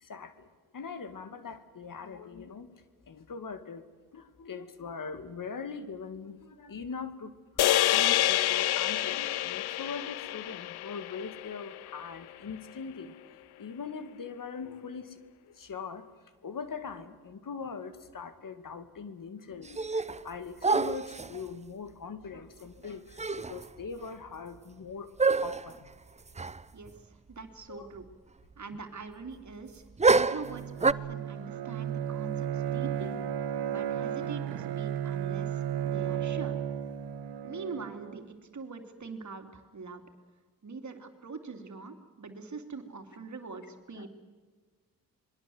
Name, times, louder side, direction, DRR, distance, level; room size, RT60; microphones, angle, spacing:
voice 1, 0.0-0.5 0.7-2.7 3.1-3.9 4.1-7.3 7.9-13.1 13.6-15.2 15.5-16.1 16.4-25.1 25.4-25.9 27.7-27.9 43.9-44.1, left 5 dB, 55° left, 10 dB, 2.2 m, -41 dB
sound 1, 7.6-12.0, left 14 dB, 85° left, 0.7 m, -28 dB
sound 2, 19.6-20.3 20.6-21.4 22.8-22.9 23.2-23.7 24.0-24.1 25.2-25.7 26.4-26.6 26.9-27.0 30.0-30.9, right 4 dB, 20° right, 0.7 m, -26 dB
voice 2, 26.7-28.1 28.6-29.8 30.1-33.2 33.7-36.6 37.4-40.0 40.6-44.1, right 4 dB, 50° right, 7 dB, 3.1 m, -43 dB
Bowed string instrument, 30.4-38.2, right 10 dB, 85° right, 1.5 m, -34 dB
26.5 x 21.5 x 7.9 m, 1.4 s
cardioid pair, 60°, 38 cm